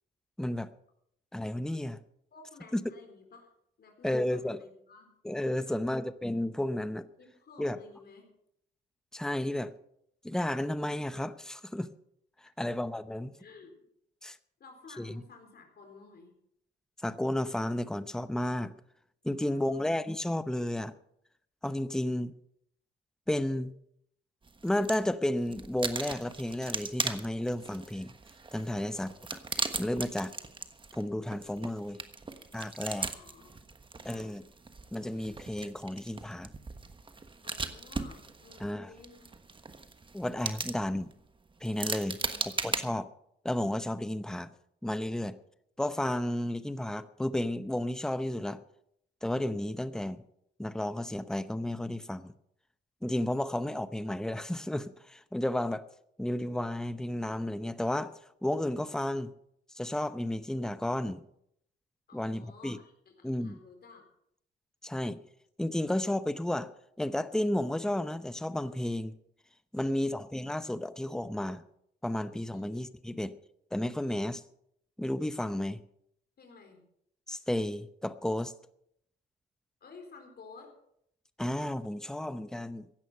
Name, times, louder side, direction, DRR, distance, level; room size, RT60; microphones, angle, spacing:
voice 1, 0.4-0.7 1.3-2.0 2.7-2.8 4.0-4.6 5.2-7.1 7.6-7.8 9.1-9.7 10.2-11.9 12.4-13.4 14.2-14.4 15.0-15.2 17.0-18.7 19.2-20.9 21.6-22.3 23.3-23.7 24.6-28.1 28.5-29.1 29.8-30.3 30.9-32.0 32.5-33.1 34.0-34.4 34.9-36.5 38.6-38.9 40.1-41.1 41.6-43.0 43.4-44.5 44.8-45.4 45.8-48.6 49.2-50.2 50.6-52.3 53.0-55.9 56.2-58.1 58.4-59.3 59.7-61.2 62.1-62.8 63.2-63.6 64.8-65.2 65.6-66.7 67.0-69.2 69.7-71.6 72.0-73.3 73.7-74.4 75.0-75.8 77.3-78.5 81.4-82.9, left 1 dB, 5° left, 13 dB, 0.8 m, -32 dB
voice 2, 2.3-3.5 3.8-5.1 5.6-6.0 7.2-8.3 13.4-13.7 14.6-16.3 19.3-19.9 28.7-29.0 32.9-33.5 34.0-34.4 37.4-39.3 42.1-42.9 62.1-64.0 69.8-70.2 72.5-72.7 76.4-76.8 79.8-80.8, left 4 dB, 55° left, 4 dB, 4.1 m, -54 dB
sound 1, 24.4-25.1 25.4-42.8, right 4 dB, 25° right, 1.3 m, -39 dB
16.0 x 11.0 x 5.6 m, 0.73 s
cardioid pair, 90°, 20 cm